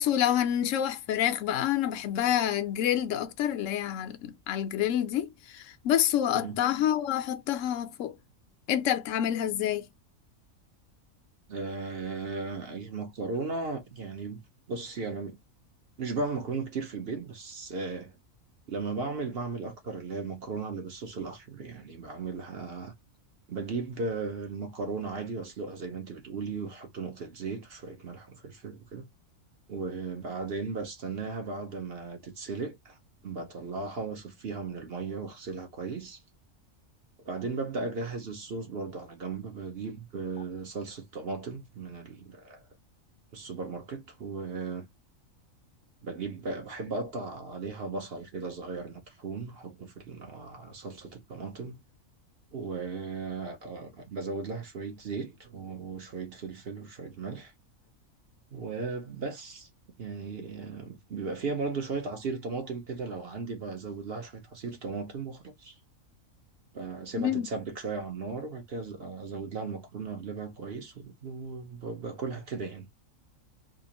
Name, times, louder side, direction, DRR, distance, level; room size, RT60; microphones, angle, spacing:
voice 1, 0.0-8.1 8.7-9.9 67.1-67.5, left 10 dB, 70° left, 0.9 m, -28 dB
voice 2, 11.5-14.4 14.7-15.4 16.0-18.2 18.7-22.9 23.5-29.1 29.7-33.0 33.2-36.2 37.2-42.6 43.3-44.9 46.0-51.8 52.5-57.5 58.5-59.7 60.0-65.7 66.7-72.9, right 4 dB, 50° right, 1.0 m, -36 dB
3.7 x 2.4 x 2.9 m
omnidirectional pair, 1.4 m